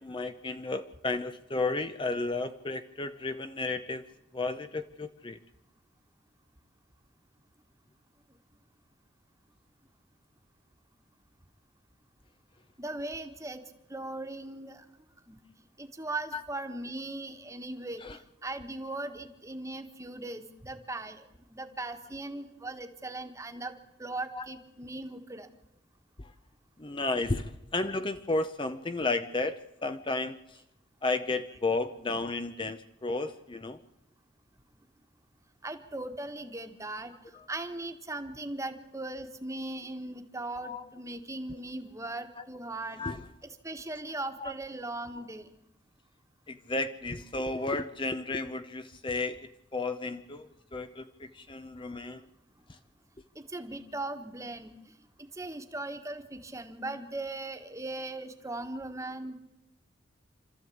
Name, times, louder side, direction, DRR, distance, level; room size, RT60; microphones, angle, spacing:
voice 1, 0.0-4.0 4.3-5.4 16.3-16.4 18.0-18.2 24.3-24.5 26.2-26.3 26.8-30.6 31.0-33.8 37.3-37.5 40.6-40.8 41.5-41.6 42.3-42.4 43.0-43.2 44.4-44.5 45.1-45.3 46.5-52.2 52.7-52.8, left 3 dB, 25° left, 10 dB, 0.7 m, -33 dB
voice 2, 12.8-13.6 13.9-14.8 15.3-15.4 15.8-18.0 18.4-25.5 35.6-37.1 37.5-43.0 43.6-45.5 53.3-54.7 55.4-59.4, right 2 dB, 15° right, 7 dB, 1.4 m, -39 dB
26.0 x 13.5 x 8.6 m, 0.92 s
head